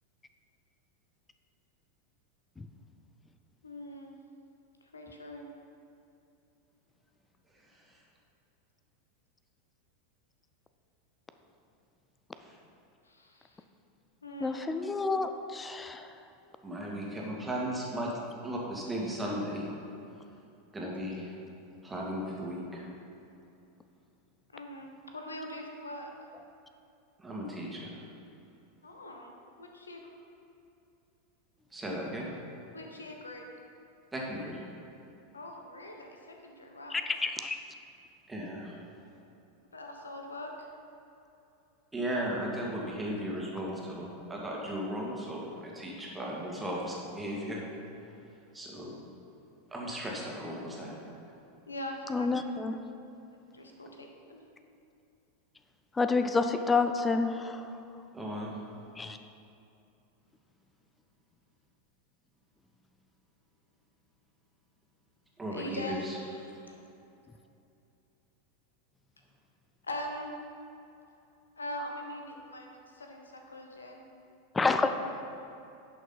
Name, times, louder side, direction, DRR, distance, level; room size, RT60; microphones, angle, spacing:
voice 1, 3.6-4.1 4.9-5.5 13.0-13.6 14.2-14.6 24.5-26.1 28.8-29.3 29.6-30.0 32.7-33.4 35.3-36.2 36.4-37.0 39.7-40.7 51.7-52.3 53.5-54.4 65.5-66.8 69.8-70.3 71.6-74.0, left 1 dB, 80° left, 2 dB, 1.0 m, -42 dB
voice 2, 7.7-8.0 12.4-12.6 16.6-18.1 18.4-19.6 20.7-21.3 21.8-22.9 27.2-28.0 31.7-32.3 34.1-34.6 38.3-38.8 41.9-47.6 48.5-48.9 49.7-51.2 58.1-58.5 65.4-66.2, equal, 10° right, -3 dB, 2.0 m, -36 dB
voice 3, 14.4-16.1 36.9-37.6 52.1-52.8 56.0-57.7 59.0-59.2 74.5-75.2, left 4 dB, 15° left, 8 dB, 0.5 m, -29 dB
10.5 x 6.1 x 4.0 m, 2.7 s
figure-of-eight pair, 90°, 0 cm